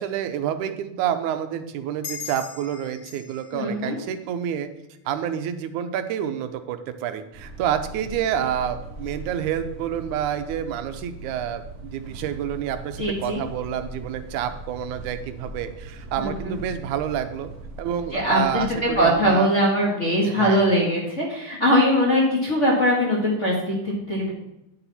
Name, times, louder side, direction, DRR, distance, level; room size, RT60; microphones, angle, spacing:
voice 1, 0.0-4.7 5.1-17.5 17.8-19.5 20.2-20.6, right 9 dB, 90° right, 9 dB, 2.1 m, -28 dB
sound 1, 2.0-5.1, left 6 dB, 50° left, 1.7 m, -41 dB
voice 2, 3.5-4.0 13.0-13.4 16.2-16.6 18.1-24.3, equal, 30° left, -3 dB, 1.4 m, -21 dB
sound 2, 7.3-19.2, right 1 dB, 30° right, 1.5 m, -40 dB
9.7 x 7.0 x 4.1 m, 0.90 s
omnidirectional pair, 3.4 m